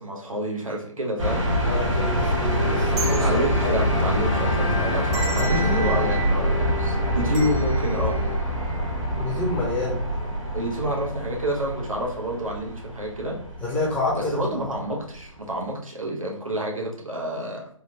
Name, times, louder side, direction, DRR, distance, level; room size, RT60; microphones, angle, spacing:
voice 1, 0.0-1.7 3.2-8.2 10.5-13.4 14.1-17.7, equal, 90° right, -2 dB, 1.0 m, -29 dB
sound 1, 1.2-15.1, equal, 60° right, 1.3 m, -25 dB
voice 2, 1.6-3.8 5.4-5.9 9.2-10.0 13.6-14.5, left 2 dB, 10° left, -5 dB, 0.7 m, -27 dB
sound 2, 2.0-9.2 9.6-9.7 10.6-10.9 11.2-11.4, right 6 dB, 30° right, 0.6 m, -38 dB
Wind instrument woodwind instrument, 2.5-8.4, left 5 dB, 65° left, 0.9 m, -34 dB
3.5 x 2.3 x 2.8 m, 0.62 s
figure-of-eight pair, 140°, 17 cm